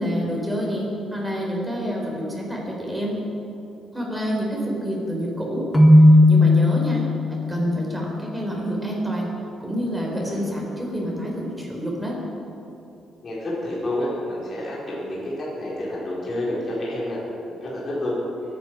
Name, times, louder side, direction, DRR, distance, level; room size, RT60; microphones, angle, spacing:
voice 1, 0.0-3.2 3.9-5.7 6.3-9.3 9.6-12.2, equal, 5° right, -3 dB, 4.2 m, -27 dB
Keyboard (musical), 5.7-7.6, left 1 dB, 15° left, 1.6 m, -14 dB
voice 2, 13.2-17.2 17.5-18.2, left 1 dB, 35° left, -6 dB, 4.4 m, -29 dB
23.0 x 9.6 x 6.0 m, 2.8 s
cardioid pair, 130°, 0 cm